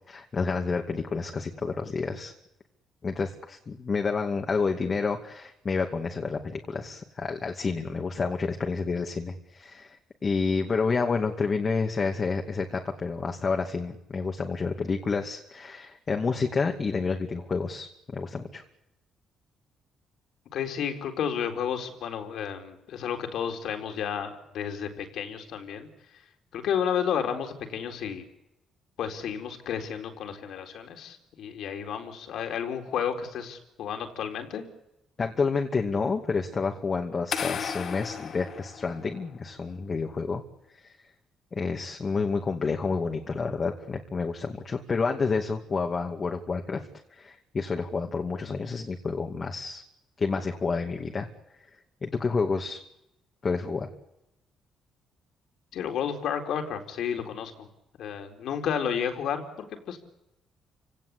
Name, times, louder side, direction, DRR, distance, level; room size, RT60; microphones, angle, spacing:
voice 1, 0.1-2.3 3.0-10.0 10.2-18.6 35.2-40.4 40.7-41.0 41.5-49.8 50.2-51.3 51.6-51.7 52.0-52.8 53.4-53.9, left 4 dB, 40° left, 3 dB, 2.5 m, -29 dB
voice 2, 20.5-25.9 26.5-28.2 29.0-34.6 55.7-57.7 58.0-60.0, left 8 dB, 75° left, 5 dB, 4.1 m, -32 dB
sound 1, 37.3-39.4, left 7 dB, 55° left, 2.1 m, -34 dB
29.5 x 17.5 x 8.5 m, 0.90 s
cardioid pair, 90°, 0 cm